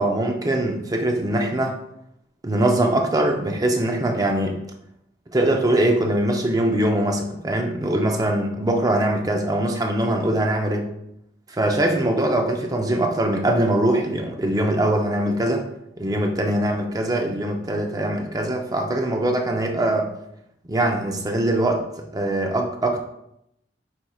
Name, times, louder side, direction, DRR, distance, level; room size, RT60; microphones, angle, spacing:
voice 1, 0.0-1.8 2.4-4.6 5.3-10.9 11.5-15.6 16.0-20.1 20.6-23.0, right 1 dB, 20° right, 3 dB, 0.5 m, -22 dB
5.1 x 4.4 x 2.3 m, 0.80 s
head